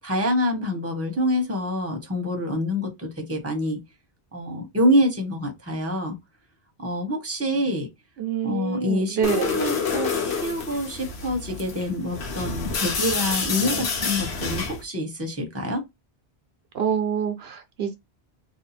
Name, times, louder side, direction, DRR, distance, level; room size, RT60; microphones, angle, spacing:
voice 1, 0.0-3.8 4.3-6.1 6.8-7.9 8.4-15.8, equal, 15° right, 1.0 m, -26 dB
voice 2, 8.2-9.5 16.7-17.9, right 7 dB, 75° right, 0.9 m, -26 dB
sound 1, 9.2-14.8, left 5 dB, 90° left, 1.1 m, -28 dB
2.7 x 2.4 x 4.0 m
omnidirectional pair, 1.1 m